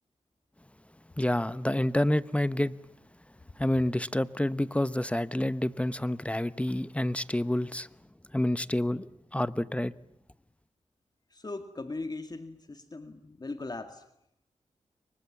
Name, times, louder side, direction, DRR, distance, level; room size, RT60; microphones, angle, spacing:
voice 1, 1.2-2.7 3.6-7.9 8.3-9.9, left 1 dB, 10° left, 1.0 m, -28 dB
voice 2, 11.3-14.1, left 3 dB, 35° left, 2.1 m, -39 dB
29.5 x 24.5 x 7.3 m
cardioid pair, 55°, 12 cm